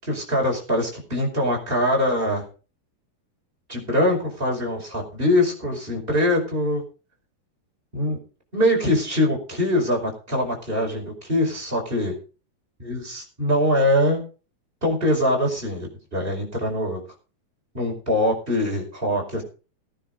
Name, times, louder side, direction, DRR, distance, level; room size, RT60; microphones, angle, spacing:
voice 1, 0.1-2.4 3.7-6.8 7.9-8.2 8.5-12.1 12.8-14.2 14.8-17.0 17.7-19.4, left 1 dB, 10° right, 0 dB, 4.9 m, -23 dB
18.5 x 10.0 x 4.0 m, 0.35 s
omnidirectional pair, 4.8 m